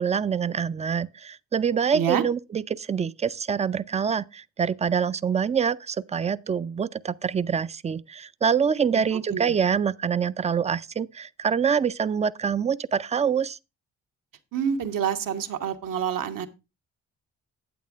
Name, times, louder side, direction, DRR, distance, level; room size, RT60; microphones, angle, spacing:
voice 1, 0.0-13.6, right 7 dB, 20° right, 0.4 m, -25 dB
voice 2, 1.9-2.2 8.9-9.0 9.3-9.5 14.5-16.5, right 8 dB, 70° right, 1.1 m, -27 dB
8.6 x 8.4 x 3.5 m
supercardioid pair, 55°, 35 cm